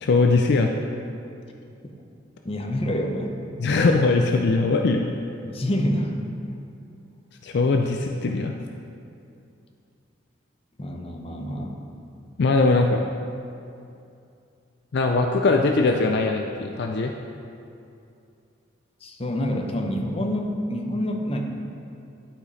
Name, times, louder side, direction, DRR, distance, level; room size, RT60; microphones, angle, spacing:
voice 1, 0.0-0.7 3.6-5.1 7.4-8.5 12.4-13.0 14.9-17.1, left 3 dB, 60° left, 3 dB, 0.4 m, -21 dB
voice 2, 2.4-3.3 5.4-6.2 10.8-11.8 19.0-21.4, equal, 30° left, 2 dB, 0.7 m, -27 dB
11.5 x 5.0 x 4.1 m, 2.6 s
head